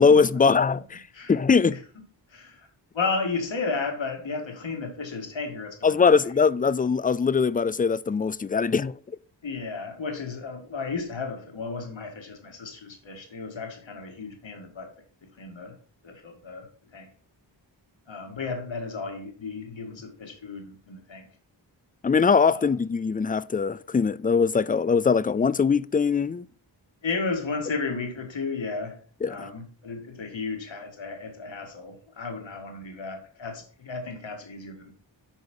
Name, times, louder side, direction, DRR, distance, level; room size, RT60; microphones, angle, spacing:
voice 1, 0.0-1.0 1.3-1.8 5.8-9.0 22.0-26.5 29.2-29.5, left 5 dB, 20° left, 0.3 m, -21 dB
voice 2, 2.3-2.7 2.9-6.2 9.4-14.9 15.2-15.7 16.0-17.1 18.1-21.3 22.5-22.7 27.0-29.0 29.3-34.9, left 4 dB, 80° left, 1.9 m, -33 dB
8.2 x 5.0 x 5.2 m
cardioid pair, 40°, 45 cm